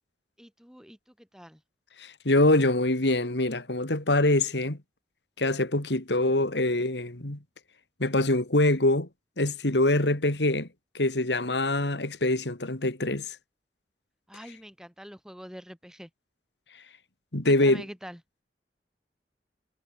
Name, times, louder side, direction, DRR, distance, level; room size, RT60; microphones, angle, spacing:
voice 1, 0.4-1.6 14.3-16.1 17.4-18.2, equal, 5° right, 5.9 m, -45 dB
voice 2, 2.0-4.8 5.4-7.4 8.0-9.1 9.4-10.7 10.9-13.4 17.3-17.8, left 2 dB, 75° left, 2.8 m, -24 dB
head